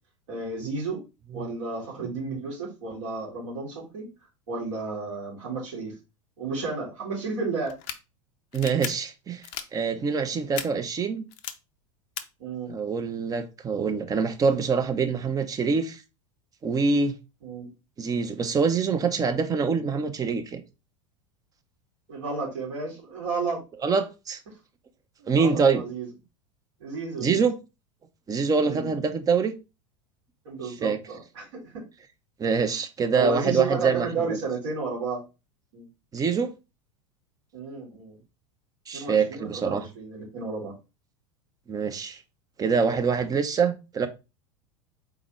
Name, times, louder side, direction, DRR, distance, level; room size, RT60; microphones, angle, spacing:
voice 1, 0.3-1.0 1.3-4.1 4.5-5.9 6.4-7.7 12.4-12.7 17.4-17.7 22.1-23.6 25.2-26.1 26.8-27.5 28.6-28.9 30.4-31.8 33.1-35.2 35.7-35.9 37.5-38.2 38.9-40.7, right 4 dB, 65° right, 2.4 m, -32 dB
voice 2, 2.0-2.4 8.5-9.4 9.7-11.2 12.7-16.0 16.6-17.1 18.0-20.6 23.8-24.4 25.3-25.8 27.2-27.6 28.3-29.5 30.6-31.0 32.4-34.4 36.1-36.5 38.9-39.9 41.7-42.2 42.6-44.1, right 5 dB, 20° right, 0.7 m, -25 dB
sound 1, 7.7-8.0 8.5-8.9 9.4-9.6 10.5-10.6 11.3-11.5 12.2-12.3, left 11 dB, 45° left, 0.6 m, -34 dB
4.3 x 3.8 x 3.1 m
figure-of-eight pair, 85°, 17 cm